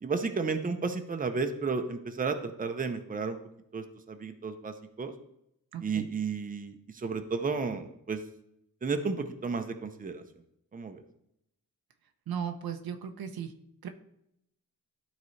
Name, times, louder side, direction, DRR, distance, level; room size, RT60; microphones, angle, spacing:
voice 1, 0.0-3.4 3.7-5.1 5.8-8.2 8.8-10.2 10.7-11.0, right 4 dB, 25° right, 7 dB, 0.6 m, -33 dB
voice 2, 5.7-6.0 12.3-13.5 13.8-13.9, right 8 dB, 80° right, 7 dB, 0.7 m, -36 dB
12.0 x 4.0 x 3.2 m, 0.78 s
wide cardioid pair, 110°, 36 cm